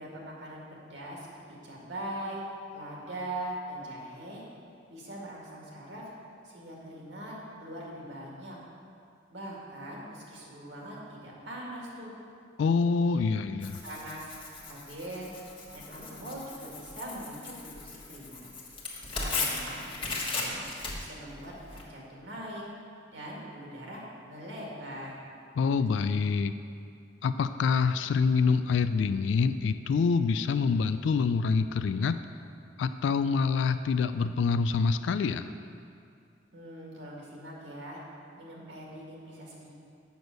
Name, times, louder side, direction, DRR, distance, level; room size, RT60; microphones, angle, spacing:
voice 1, 0.0-2.4 2.7-4.5 4.9-6.1 6.4-8.6 9.3-12.2 13.0-13.2 13.8-14.3 14.7-15.3 15.7-18.4 19.1-20.6 20.9-21.5 21.9-22.6 23.1-25.2 36.5-38.0 38.4-39.7, right 1 dB, 75° right, -3 dB, 2.0 m, -41 dB
voice 2, 12.6-13.8 25.6-26.5 27.2-32.2 32.8-35.5, left 5 dB, 70° left, 11 dB, 0.3 m, -26 dB
Tearing, 13.6-21.8, left 3 dB, 30° left, 1.3 m, -37 dB
6.9 x 6.2 x 6.4 m, 2.4 s
head